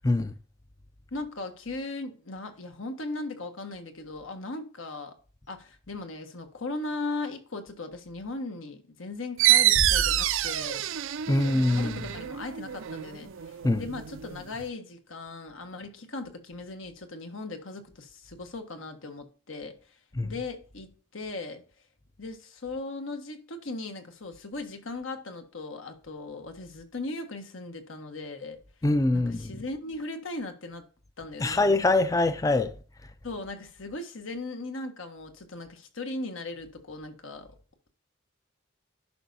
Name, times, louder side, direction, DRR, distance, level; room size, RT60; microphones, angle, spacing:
voice 1, 1.1-5.1 5.5-10.8 11.7-19.8 20.2-21.6 22.2-28.6 29.1-30.9 31.2-31.6 33.2-37.5, left 2 dB, 90° left, 1.4 m, -38 dB
sound 1, 9.4-14.7, right 13 dB, 85° right, 0.4 m, -27 dB
Bass drum, 9.7-11.2, left 1 dB, 60° left, 0.9 m, -34 dB
voice 2, 11.3-11.9 13.6-13.8 20.2-20.3 28.8-29.4 31.4-32.7, left 2 dB, 15° left, 0.3 m, -23 dB
11.0 x 5.4 x 2.7 m
head